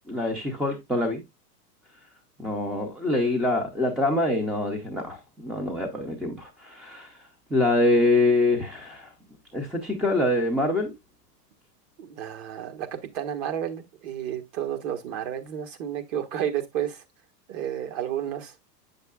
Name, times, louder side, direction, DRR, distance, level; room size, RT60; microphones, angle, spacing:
voice 1, 0.1-1.2 2.4-7.1 7.5-9.1 9.5-10.9, left 2 dB, ahead, 0.3 m, -25 dB
voice 2, 12.0-17.0 17.5-18.5, right 10 dB, 45° right, 1.5 m, -31 dB
8.2 x 6.5 x 2.3 m
hypercardioid pair, 125°, 49 cm